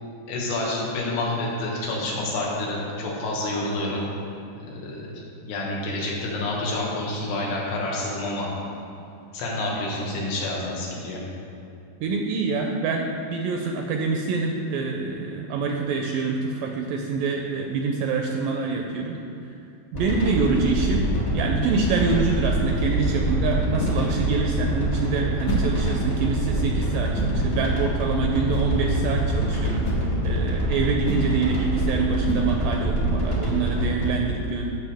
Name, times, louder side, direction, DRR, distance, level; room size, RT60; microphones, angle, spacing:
voice 1, 0.3-4.1 4.6-8.5 9.3-11.2, left 2 dB, 80° left, -4 dB, 3.5 m, -28 dB
voice 2, 12.0-19.2 19.9-21.1 21.3-29.9 30.2-34.7, right 4 dB, 80° right, 2 dB, 2.0 m, -26 dB
sound 1, 19.9-34.0, right 1 dB, 30° left, 1.1 m, -25 dB
sound 2, 22.5-33.0, equal, 60° left, 2.3 m, -34 dB
15.0 x 6.2 x 3.5 m, 2.6 s
omnidirectional pair, 4.5 m